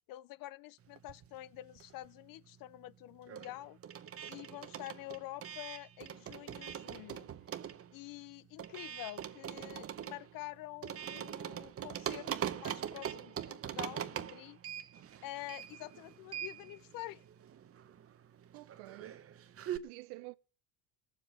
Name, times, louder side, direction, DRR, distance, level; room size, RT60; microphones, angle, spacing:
voice 1, 0.1-3.8 4.3-7.3 7.9-14.6 15.2-17.2, left 16 dB, 60° left, 0.5 m, -47 dB
sound 1, 1.0-2.2 2.5-19.8, right 9 dB, 35° right, 0.8 m, -43 dB
voice 2, 18.5-19.2 19.8-20.4, right 22 dB, 75° right, 0.6 m, -49 dB
18.5 x 7.4 x 5.0 m
supercardioid pair, 85°, 40 cm